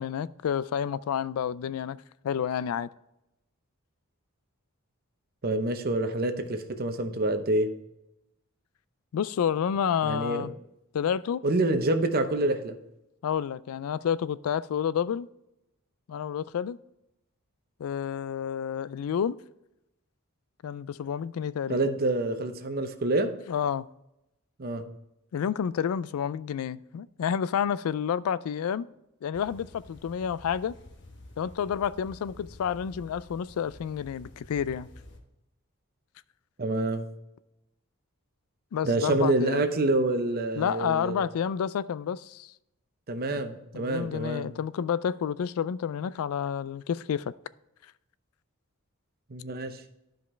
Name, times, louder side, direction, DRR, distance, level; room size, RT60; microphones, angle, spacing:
voice 1, 0.0-2.0 2.2-2.9 9.1-10.5 10.9-11.4 13.2-15.3 16.1-16.8 17.8-19.4 20.6-21.9 23.5-23.8 25.3-28.9 29.2-30.7 31.4-34.9 38.7-39.7 40.6-42.5 43.3-43.4 43.7-47.3, left 8 dB, 80° left, 0.3 m, -29 dB
voice 2, 5.4-7.7 10.0-10.5 11.4-12.8 21.7-23.3 24.6-24.9 36.6-37.1 38.8-41.2 43.1-44.5 49.3-49.8, right 2 dB, 45° right, 0.8 m, -27 dB
sound 1, 29.3-35.2, left 1 dB, 55° left, 1.1 m, -50 dB
11.0 x 5.2 x 3.3 m
head